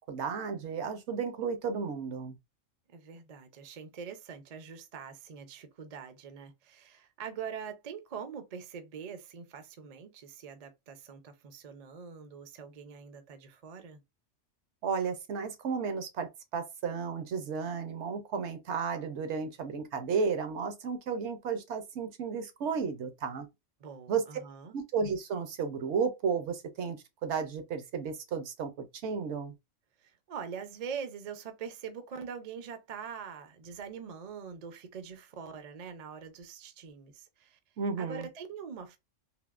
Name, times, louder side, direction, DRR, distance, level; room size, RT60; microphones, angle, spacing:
voice 1, 0.1-2.4 14.8-23.5 24.1-24.2 24.7-29.5 37.8-38.3, right 5 dB, 70° right, 0.9 m, -33 dB
voice 2, 2.9-14.0 23.8-24.8 30.0-37.6 38.0-39.0, right 6 dB, 50° right, 0.5 m, -43 dB
3.4 x 2.6 x 2.4 m
omnidirectional pair, 1.3 m